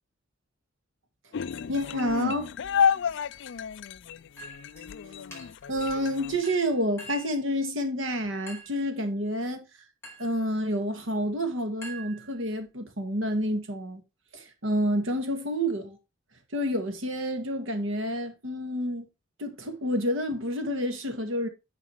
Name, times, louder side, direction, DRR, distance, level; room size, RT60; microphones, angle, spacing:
sound 1, 1.3-6.4, left 7 dB, 65° left, 0.4 m, -30 dB
voice 1, 1.7-2.5 5.7-9.7 10.2-14.0 14.3-16.0 16.5-19.1 19.4-21.5, equal, 80° right, 2.0 m, -29 dB
Chink clink, 4.4-4.9 5.3-5.7 6.4-7.4 8.5-8.8 10.0-10.4 11.8-12.6, right 1 dB, 15° left, 4.9 m, -45 dB
9.5 x 5.1 x 4.6 m
head